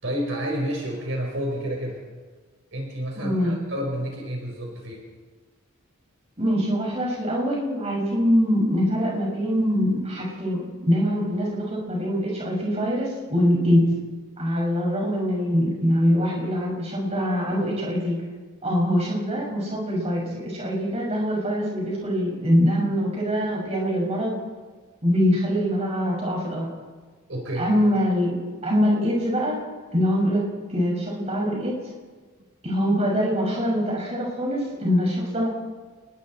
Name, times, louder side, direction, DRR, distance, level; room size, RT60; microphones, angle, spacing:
voice 1, 0.0-2.0 2.7-5.0 27.3-27.7, equal, 60° right, 0 dB, 4.6 m, -30 dB
voice 2, 3.2-3.5 6.4-13.8 14.4-18.2 18.6-24.3 25.0-26.7 27.6-29.6 29.9-30.4 30.7-31.8 32.6-35.5, equal, 30° right, -2 dB, 6.2 m, -23 dB
30.0 x 21.0 x 4.4 m, 1.4 s
head